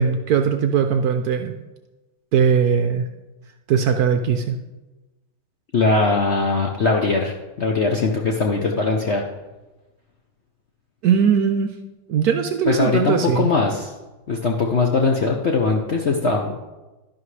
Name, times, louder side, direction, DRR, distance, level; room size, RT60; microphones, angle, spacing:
voice 1, 0.0-1.5 2.3-3.1 3.7-4.6 11.0-11.7 12.1-13.5, right 7 dB, 65° right, 6 dB, 1.0 m, -19 dB
voice 2, 5.7-9.2 12.7-13.9 14.3-16.6, left 3 dB, 60° left, 1 dB, 0.7 m, -20 dB
11.5 x 11.0 x 3.2 m, 1.1 s
omnidirectional pair, 2.1 m